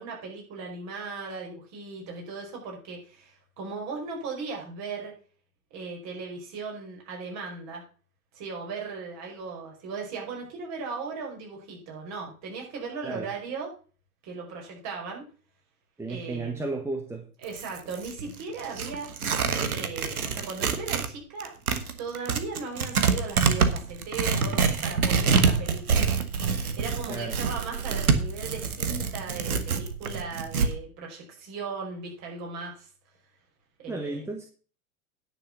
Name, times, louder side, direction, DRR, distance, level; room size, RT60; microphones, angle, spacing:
voice 1, 0.0-5.1 5.7-7.8 8.3-13.7 14.2-15.2 16.1-16.7 17.4-19.1 19.7-21.5 22.0-26.2 26.8-32.9 33.8-34.2, right 4 dB, 40° right, 0 dB, 5.3 m, -37 dB
voice 2, 16.0-17.3 27.1-27.4 33.9-34.5, right 3 dB, 5° right, 4 dB, 1.1 m, -33 dB
Tearing, 17.4-21.1 21.4-30.7, right 5 dB, 75° right, 1.5 m, -26 dB
10.0 x 6.6 x 6.1 m, 0.39 s
figure-of-eight pair, 100°, 44 cm